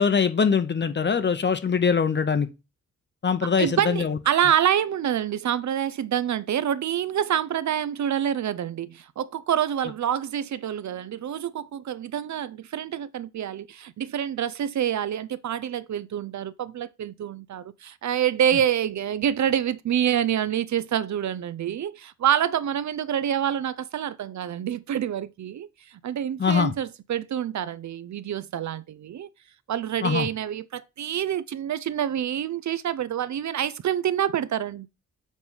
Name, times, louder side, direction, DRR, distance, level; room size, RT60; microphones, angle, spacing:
voice 1, 0.0-2.5 3.2-4.2 26.4-26.7 30.0-30.3, left 6 dB, 35° left, 0.7 m, -22 dB
voice 2, 3.6-29.3 29.7-34.9, right 10 dB, 60° right, 0.5 m, -27 dB
7.2 x 3.2 x 5.5 m
wide cardioid pair, 165°, 33 cm